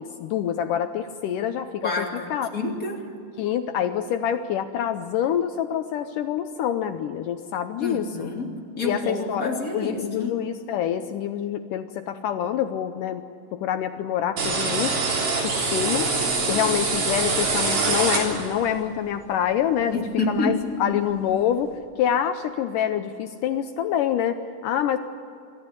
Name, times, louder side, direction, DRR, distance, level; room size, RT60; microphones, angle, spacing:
voice 1, 0.0-2.5 3.4-8.3 8.8-13.2 13.5-15.0 15.4-16.1 16.5-25.0, left 9 dB, 75° left, 9 dB, 2.1 m, -26 dB
voice 2, 1.8-3.0 7.8-10.3 19.9-20.9, left 2 dB, 25° left, -1 dB, 3.1 m, -28 dB
sound 1, 14.4-18.7, right 3 dB, 70° right, 5.3 m, -24 dB
26.5 x 13.5 x 9.8 m, 2.5 s
omnidirectional pair, 4.2 m